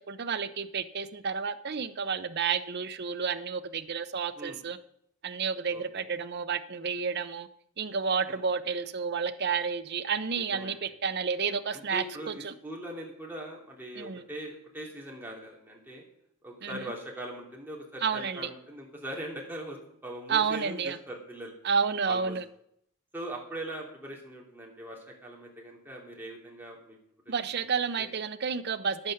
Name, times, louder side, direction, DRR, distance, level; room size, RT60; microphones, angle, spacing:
voice 1, 0.0-4.8 5.2-7.5 7.8-12.5 14.0-14.2 16.6-16.9 18.0-18.5 20.3-21.0 21.6-22.4 27.3-29.1, right 6 dB, 45° right, 12 dB, 0.6 m, -30 dB
voice 2, 5.7-6.1 8.3-8.4 10.4-10.9 11.7-16.0 16.4-19.8 20.0-21.5 22.1-22.4 23.1-27.0 27.3-27.4 28.0-28.1, right 1 dB, 10° right, -2 dB, 2.5 m, -41 dB
10.0 x 9.5 x 6.5 m, 0.72 s
head